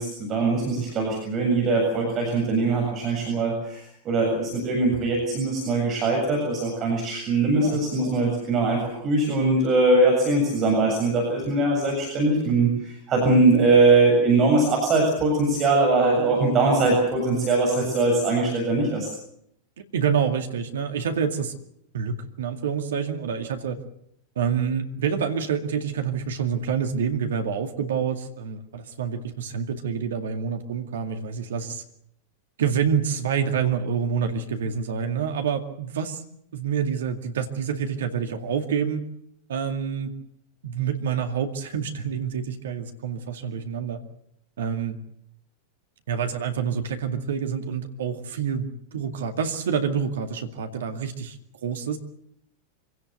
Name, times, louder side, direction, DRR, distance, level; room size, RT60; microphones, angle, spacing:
voice 1, 0.0-19.1, right 3 dB, 30° right, 0 dB, 7.4 m, -21 dB
voice 2, 7.6-8.2 19.8-21.5 21.9-23.8 24.4-31.8 32.6-36.2 36.5-39.0 39.5-40.1 40.6-44.0 44.6-45.0 46.1-51.4 51.6-52.0, right 7 dB, 60° right, 6 dB, 2.2 m, -27 dB
25.5 x 18.0 x 8.0 m, 0.74 s
figure-of-eight pair, 90°, 0 cm